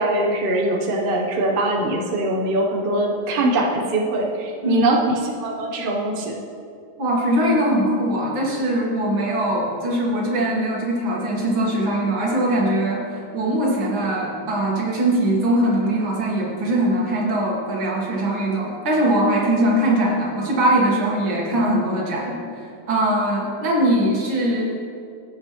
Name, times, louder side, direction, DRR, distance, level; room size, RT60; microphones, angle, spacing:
voice 1, 0.0-5.0 5.4-6.3, right 1 dB, 40° right, 0 dB, 0.8 m, -22 dB
voice 2, 7.0-24.7, right 1 dB, 70° right, -3 dB, 2.4 m, -21 dB
16.0 x 6.6 x 3.1 m, 2.5 s
omnidirectional pair, 2.3 m